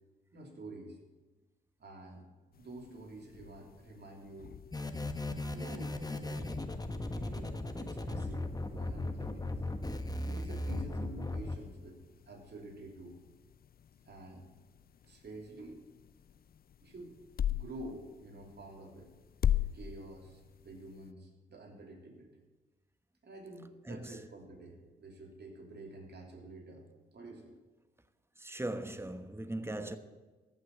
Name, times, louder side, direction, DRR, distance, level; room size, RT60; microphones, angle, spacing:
voice 1, 0.3-1.0 1.8-2.3 2.6-4.6 5.5-6.5 7.1-9.6 10.3-13.2 14.0-14.5 15.0-15.8 16.8-17.2 17.5-19.1 19.6-22.4 23.2-26.9 27.1-27.5 29.8-29.9, right 2 dB, 55° right, 3.0 m, -49 dB
sound 1, 2.5-21.1, left 10 dB, 50° left, 0.5 m, -42 dB
sound 2, 4.7-11.5, left 2 dB, 20° left, 1.3 m, -37 dB
voice 2, 28.4-30.0, right 1 dB, 10° right, 1.2 m, -39 dB
14.0 x 6.5 x 8.6 m
supercardioid pair, 45°, 20 cm